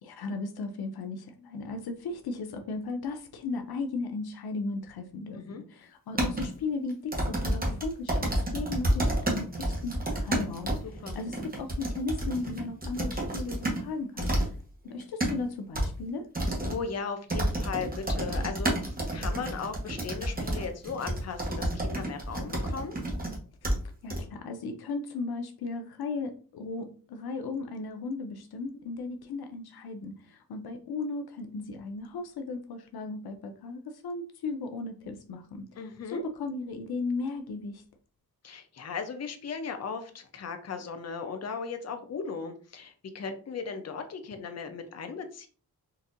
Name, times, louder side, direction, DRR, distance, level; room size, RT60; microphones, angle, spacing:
voice 1, 0.0-5.4 5.7-10.7 11.1-14.3 14.8-16.3 24.0-35.6 36.1-37.8, left 3 dB, 90° left, 6 dB, 0.6 m, -36 dB
sound 1, 6.2-6.5 7.1-13.8 14.2-14.5 14.9-15.3 15.7-15.9 16.3-16.8 17.3-23.4 23.6-23.8 24.1-24.2, right 1 dB, 25° right, 1.0 m, -29 dB
voice 2, 10.8-11.2 16.6-23.0 35.8-36.2 38.4-45.5, left 5 dB, 45° left, 7 dB, 0.6 m, -37 dB
4.0 x 2.5 x 2.5 m, 0.40 s
wide cardioid pair, 85°, 36 cm